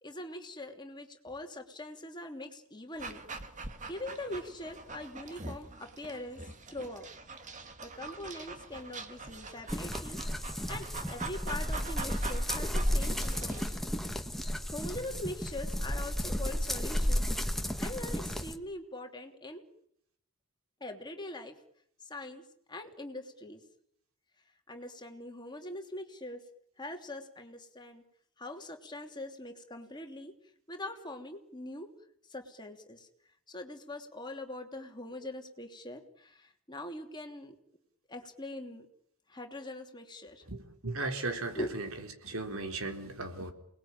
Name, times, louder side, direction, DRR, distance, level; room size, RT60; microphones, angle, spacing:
voice 1, 0.0-3.2 3.8-6.4 6.7-7.1 7.8-10.2 10.7-13.9 14.4-17.3 17.8-19.6 20.8-21.6 22.1-22.4 22.7-23.6 24.7-26.4 26.8-28.0 28.4-30.3 30.7-31.9 32.3-33.1 33.5-37.6 38.1-38.9 39.3-40.4 41.6-41.7, left 1 dB, 20° left, 4 dB, 2.9 m, -42 dB
Dog, 3.0-13.7, right 3 dB, 35° right, 2.2 m, -44 dB
sound 1, 9.7-18.6, equal, ahead, 1.7 m, -33 dB
voice 2, 40.5-41.9 42.2-43.5, right 2 dB, 75° right, 5 dB, 4.0 m, -36 dB
29.0 x 20.5 x 8.9 m, 0.71 s
head